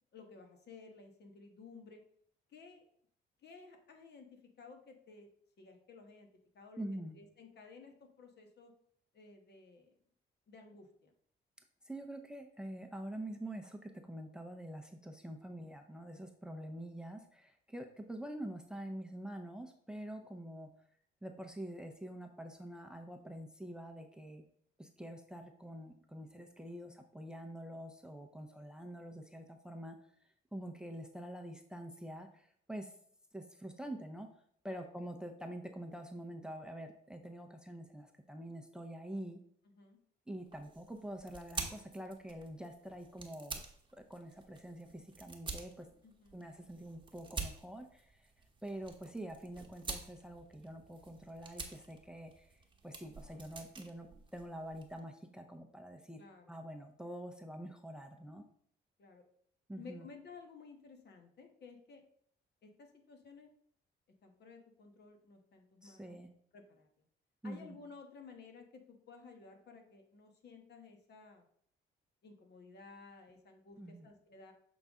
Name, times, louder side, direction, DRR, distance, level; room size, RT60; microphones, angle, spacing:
voice 1, 0.0-2.0 2.5-2.8 3.4-5.3 5.6-6.3 6.5-6.8 7.1-8.7 9.1-9.9 10.5-11.1 34.7-34.9 39.7-40.0 46.0-46.4 56.2-56.5 59.0-59.2 59.8-62.0 62.6-63.5 64.2-66.2 66.5-66.9 67.4-71.4 72.2-74.5, left 4 dB, 55° left, 4 dB, 1.3 m, -55 dB
voice 2, 6.8-7.2 11.8-20.7 21.2-24.4 24.8-32.9 33.3-34.3 34.6-39.4 40.3-43.6 43.9-45.9 46.3-48.3 48.6-52.5 52.8-56.2 56.5-58.4 59.7-60.1 65.8-66.3 67.4-67.8 73.8-74.1, right 1 dB, 5° right, 5 dB, 0.6 m, -46 dB
sound 1, 40.5-55.0, right 4 dB, 25° right, 1.0 m, -48 dB
6.7 x 4.0 x 3.6 m, 0.64 s
cardioid pair, 90°, 20 cm